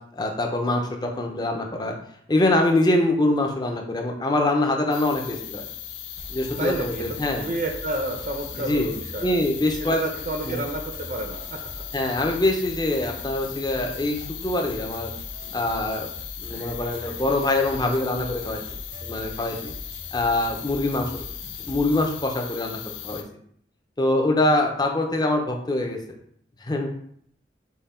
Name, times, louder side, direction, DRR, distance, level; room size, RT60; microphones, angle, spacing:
voice 1, 0.1-2.0 2.3-5.7 6.3-7.4 8.7-8.9 9.2-10.0 10.4-10.6 11.9-14.2 14.4-15.1 15.5-16.1 16.4-18.6 19.0-19.7 20.1-21.2 21.6-23.2 24.0-26.2 26.6-26.9, left 2 dB, 20° left, 2 dB, 0.5 m, -24 dB
sound 1, 4.9-23.2, left 10 dB, 85° left, 0.5 m, -38 dB
sound 2, 6.2-22.2, equal, 75° right, 0.9 m, -42 dB
voice 2, 6.6-9.4 9.8-11.6, right 2 dB, 45° right, 3 dB, 0.5 m, -30 dB
5.5 x 2.2 x 4.2 m, 0.65 s
head